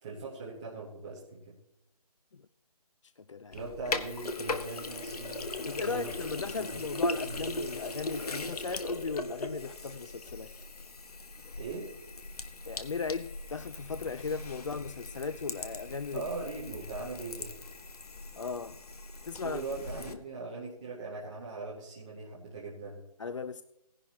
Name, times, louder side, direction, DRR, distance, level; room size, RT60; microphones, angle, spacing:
voice 1, 0.0-1.4 3.5-6.1 6.7-6.8 7.3-7.5 11.6-11.9 16.1-17.5 19.4-23.0, right 3 dB, 10° right, 0.7 m, -40 dB
voice 2, 3.0-3.6 5.7-10.5 12.7-16.3 18.4-18.8 19.2-19.6 20.1-20.2 23.2-23.6, left 5 dB, 50° left, 0.4 m, -37 dB
Sink (filling or washing), 3.5-20.1, left 2 dB, 70° left, 1.5 m, -39 dB
17.5 x 11.0 x 2.9 m
hypercardioid pair, 175°, 20 cm